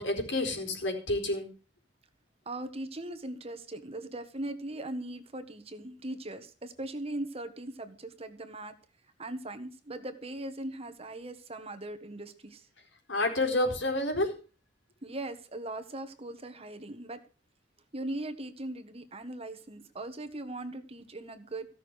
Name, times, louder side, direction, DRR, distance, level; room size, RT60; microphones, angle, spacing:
voice 1, 0.0-1.5 13.1-14.4, left 2 dB, 80° left, 3 dB, 4.4 m, -29 dB
voice 2, 2.4-8.7 9.2-12.7 15.0-17.2 17.9-21.7, right 1 dB, 30° right, 9 dB, 1.4 m, -39 dB
15.5 x 6.6 x 8.1 m, 0.37 s
head